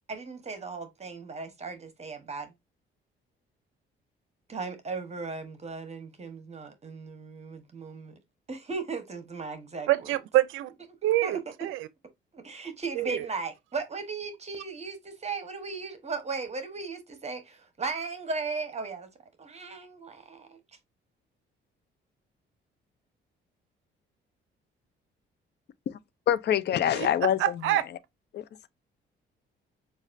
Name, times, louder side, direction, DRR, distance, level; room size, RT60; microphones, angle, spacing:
voice 1, 0.1-2.5 4.5-8.1 8.5-10.1 11.2-11.4 12.3-19.1 19.4-20.6, right 4 dB, 35° right, 1.2 m, -36 dB
voice 2, 9.9-10.7 11.0-11.9 13.0-13.3 26.9-27.1 27.4-27.8, right 15 dB, 85° right, 0.5 m, -26 dB
voice 3, 26.3-27.4 28.3-28.4, left 10 dB, 60° left, 0.6 m, -25 dB
7.1 x 2.5 x 2.6 m
cardioid pair, 90°, 20 cm